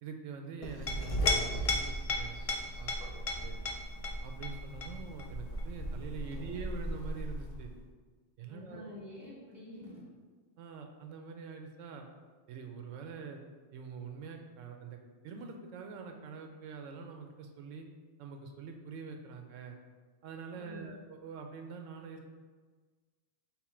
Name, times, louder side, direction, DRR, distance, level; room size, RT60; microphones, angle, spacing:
voice 1, 0.0-2.4 2.8-3.6 4.2-7.7 8.4-8.9 10.6-12.1 12.5-13.4 13.7-15.0 15.2-17.9 18.2-19.8 20.2-22.3, right 5 dB, 85° right, 4 dB, 0.9 m, -45 dB
Chink clink, 0.6-7.7, left 1 dB, 60° left, 0.3 m, -35 dB
voice 2, 8.5-10.0 20.5-20.9, left 1 dB, 20° left, -7 dB, 1.4 m, -48 dB
5.6 x 2.1 x 4.3 m, 1.4 s
omnidirectional pair, 1.3 m